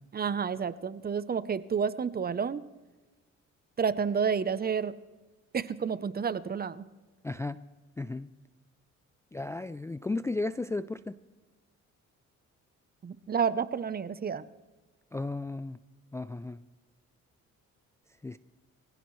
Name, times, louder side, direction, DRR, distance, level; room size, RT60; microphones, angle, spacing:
voice 1, 0.1-2.6 3.8-4.9 5.5-6.8 13.0-14.4, right 6 dB, 30° right, 0.7 m, -30 dB
voice 2, 7.2-7.6 8.0-8.3 9.3-11.2 15.1-15.8 16.1-16.7 18.2-18.4, left 2 dB, 10° left, 0.4 m, -34 dB
24.0 x 16.0 x 3.2 m
cardioid pair, 90°, 30 cm